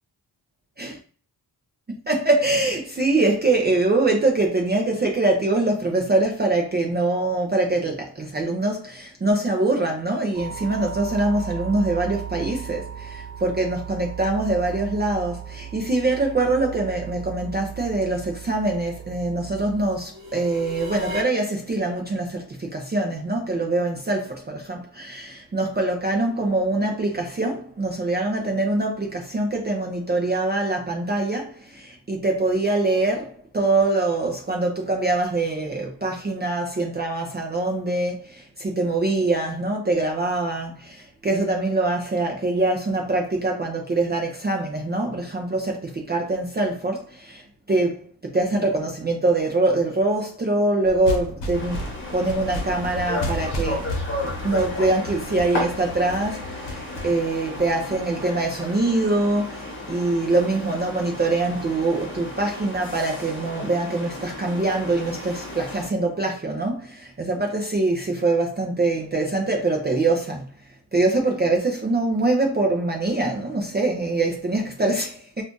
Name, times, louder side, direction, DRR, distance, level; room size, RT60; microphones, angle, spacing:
voice 1, 1.9-51.8 52.1-53.9 54.4-70.5 70.9-75.4, right 2 dB, 25° right, 0.5 m, -24 dB
sound 1, 10.3-21.2, right 6 dB, 60° right, 1.2 m, -36 dB
sound 2, 50.8-58.3, left 2 dB, 85° left, 0.9 m, -33 dB
sound 3, 51.5-65.9, left 1 dB, 30° left, 1.1 m, -34 dB
2.5 x 2.4 x 3.7 m
wide cardioid pair, 115°, 42 cm